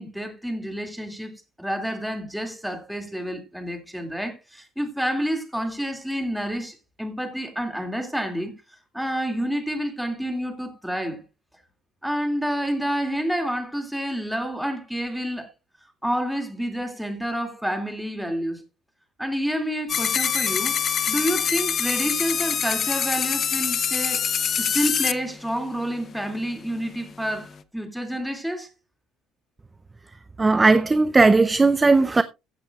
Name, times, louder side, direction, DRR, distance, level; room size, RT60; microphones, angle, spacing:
voice 1, 0.0-8.6 8.9-11.2 12.0-15.5 16.0-18.6 19.2-20.7 21.1-24.3 24.6-28.7, equal, ahead, 2.4 m, -29 dB
sound 1, 19.9-25.1, left 7 dB, 40° left, 0.8 m, -24 dB
voice 2, 30.4-32.2, right 3 dB, 15° right, 0.5 m, -17 dB
15.5 x 8.8 x 2.4 m
cardioid pair, 120°, 0 cm